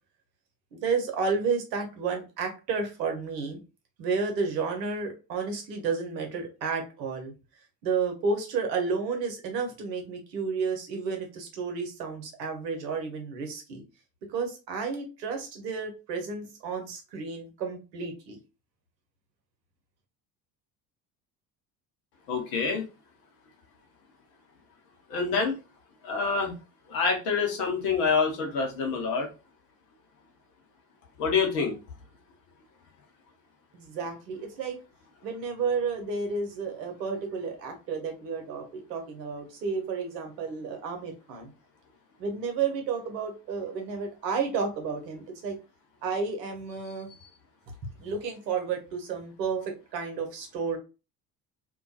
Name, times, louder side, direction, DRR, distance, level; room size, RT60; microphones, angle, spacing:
voice 1, 0.7-3.6 4.0-7.3 7.8-13.8 14.3-18.4 33.7-34.8 35.2-41.5 42.2-45.5 46.0-47.1 48.0-50.8, right 5 dB, 80° right, 4 dB, 0.9 m, -31 dB
voice 2, 22.3-22.8 25.1-25.6 26.0-26.5 26.9-29.3 31.2-31.8, left 5 dB, 70° left, 2 dB, 1.0 m, -26 dB
2.5 x 2.2 x 2.4 m, 0.30 s
hypercardioid pair, 55°, 50 cm